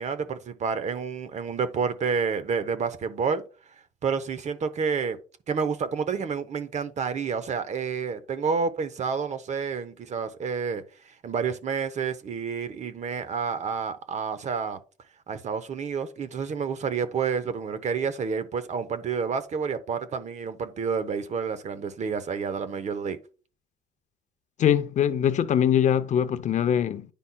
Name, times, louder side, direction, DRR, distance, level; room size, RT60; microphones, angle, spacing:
voice 1, 0.0-3.4 4.0-5.2 5.5-10.8 11.2-14.8 15.3-23.2, right 5 dB, 45° right, 0.9 m, -29 dB
voice 2, 24.6-27.1, left 9 dB, 45° left, 0.6 m, -22 dB
10.0 x 5.3 x 2.3 m
cardioid pair, 110°, 17 cm